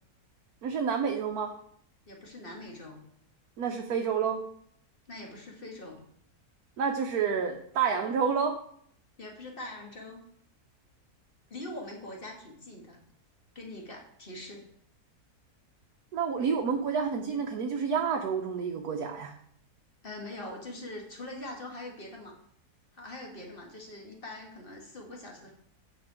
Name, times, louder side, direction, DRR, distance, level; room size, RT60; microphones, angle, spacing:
voice 1, 0.6-1.5 3.6-4.4 6.8-8.6 16.1-19.3, right 6 dB, 70° right, 3 dB, 1.3 m, -29 dB
voice 2, 2.1-3.0 5.1-6.0 9.2-10.2 11.5-13.0 13.6-14.7 20.0-22.4 22.9-25.5, left 1 dB, 35° left, 1 dB, 1.9 m, -43 dB
9.0 x 6.0 x 4.8 m, 0.65 s
omnidirectional pair, 1.7 m